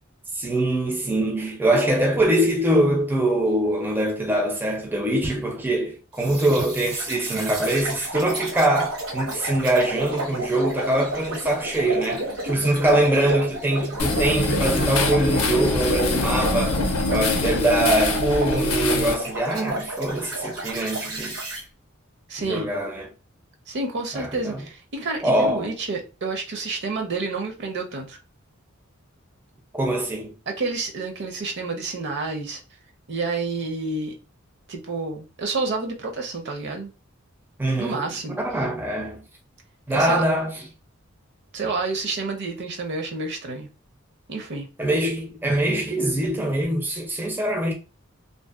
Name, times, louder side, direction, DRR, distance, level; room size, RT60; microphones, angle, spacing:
voice 1, 0.4-16.8 17.1-21.6 22.4-23.1 24.1-24.6 25.2-25.7 29.7-30.3 37.6-38.1 38.3-39.2 39.9-40.5 44.8-47.7, right 1 dB, 10° right, 0.4 m, -23 dB
sound 1, 6.2-21.6, right 1 dB, 90° right, 1.1 m, -31 dB
sound 2, 14.0-19.1, left 2 dB, 80° left, 0.5 m, -24 dB
voice 2, 22.3-22.7 23.7-28.2 30.5-32.6 33.1-34.1 34.7-36.9 37.8-38.4 39.9-40.2 41.5-43.7 44.3-44.7, right 3 dB, 55° right, 0.6 m, -29 dB
2.6 x 2.1 x 2.3 m
head